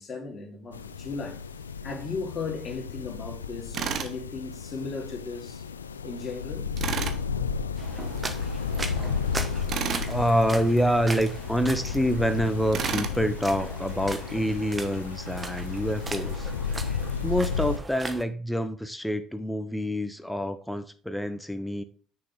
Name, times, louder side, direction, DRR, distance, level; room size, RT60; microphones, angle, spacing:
voice 1, 0.0-1.4 1.8-5.6 6.0-6.7, left 4 dB, 40° left, 2.7 m, -36 dB
sound 1, 0.7-17.8, left 6 dB, 90° left, 0.3 m, -33 dB
Tools, 3.7-4.2 6.8-7.2 9.7-10.1 12.7-13.2, right 8 dB, 55° right, 0.9 m, -30 dB
sound 2, 7.8-18.2, right 3 dB, 25° right, 1.1 m, -39 dB
voice 2, 10.1-16.5 17.2-21.8, equal, 5° left, 0.8 m, -27 dB
6.4 x 6.3 x 3.6 m
hypercardioid pair, 55°, 0 cm